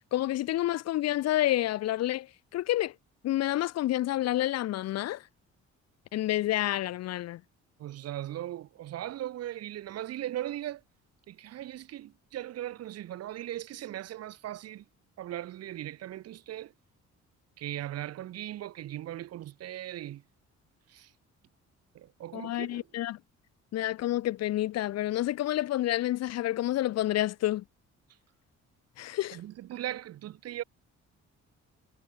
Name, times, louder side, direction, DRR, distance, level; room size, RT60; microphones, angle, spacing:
voice 1, 0.0-2.3 2.5-2.9 3.2-5.2 6.1-7.4 22.3-23.2 23.7-27.6 29.0-29.4, left 14 dB, 60° left, 0.4 m, -29 dB
voice 2, 7.8-10.8 11.3-14.8 15.2-16.7 17.6-20.2 20.9-21.1 21.9-22.8 29.3-30.6, right 13 dB, 55° right, 0.5 m, -38 dB
cardioid pair, 90°, 30 cm